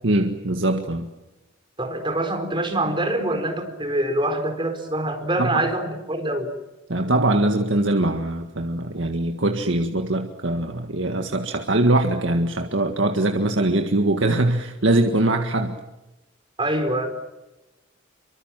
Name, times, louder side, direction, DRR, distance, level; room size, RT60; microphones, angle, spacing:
voice 1, 0.0-1.1 5.4-5.6 6.9-15.8, right 2 dB, 65° right, 5 dB, 1.8 m, -22 dB
voice 2, 1.8-6.5 16.6-17.1, right 1 dB, 25° right, 6 dB, 4.6 m, -25 dB
27.5 x 25.0 x 7.5 m, 1.0 s
head